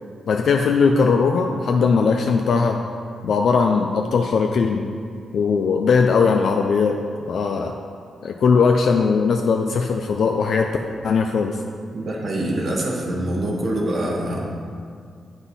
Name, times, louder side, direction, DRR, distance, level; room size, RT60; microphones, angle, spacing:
voice 1, 0.3-2.8 3.2-4.9 5.3-7.0 7.3-7.7 8.2-10.7 11.0-11.6, left 5 dB, 70° left, 3 dB, 0.5 m, -19 dB
voice 2, 11.9-14.5, right 1 dB, 55° right, -1 dB, 1.7 m, -25 dB
7.9 x 6.1 x 5.5 m, 2.2 s
cardioid pair, 85°, 0 cm